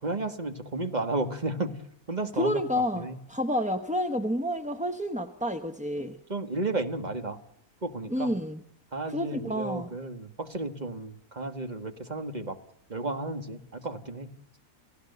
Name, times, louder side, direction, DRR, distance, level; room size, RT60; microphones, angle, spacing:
voice 1, 0.0-2.6 2.9-3.2 6.3-7.4 7.8-8.3 8.9-12.6 12.9-14.3, right 2 dB, 30° right, 7 dB, 1.7 m, -33 dB
voice 2, 2.4-6.2 8.1-8.6 9.1-9.9, equal, 5° right, 6 dB, 0.7 m, -29 dB
28.5 x 16.5 x 6.7 m, 0.78 s
omnidirectional pair, 1.5 m